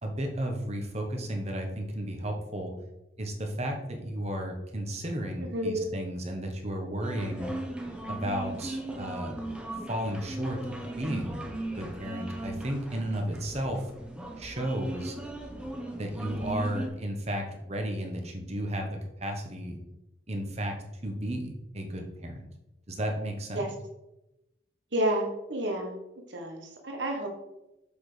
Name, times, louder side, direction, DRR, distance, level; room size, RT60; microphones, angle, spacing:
voice 1, 0.0-2.7 3.2-7.6 8.1-9.3 9.9-13.8 14.4-15.2 16.0-19.8 20.3-20.7 21.0-22.4 22.9-23.7, right 1 dB, 35° right, 3 dB, 1.3 m, -33 dB
voice 2, 5.4-5.9 23.5-23.7 24.9-26.0 26.3-27.3, right 1 dB, 70° right, 2 dB, 1.4 m, -30 dB
sound 1, 7.0-16.9, right 1 dB, 5° right, 1.0 m, -38 dB
7.1 x 6.1 x 5.1 m, 0.92 s
head